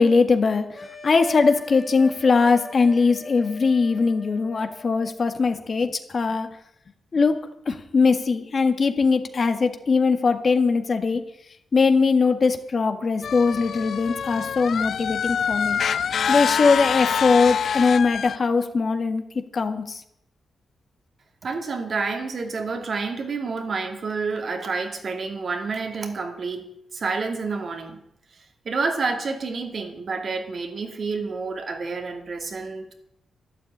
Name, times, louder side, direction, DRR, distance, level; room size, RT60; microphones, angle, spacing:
voice 1, 0.0-6.5 7.1-11.2 11.7-15.8 16.3-19.2 19.5-20.0, left 4 dB, 45° left, 1.6 m, -21 dB
sound 1, 0.7-5.2, left 1 dB, 20° left, 2.0 m, -40 dB
sound 2, 13.2-18.4, left 7 dB, 65° left, 0.5 m, -25 dB
voice 2, 21.4-28.0 28.3-32.9, right 4 dB, 50° right, 2.4 m, -29 dB
12.0 x 12.0 x 8.8 m
cardioid pair, 105°, 0 cm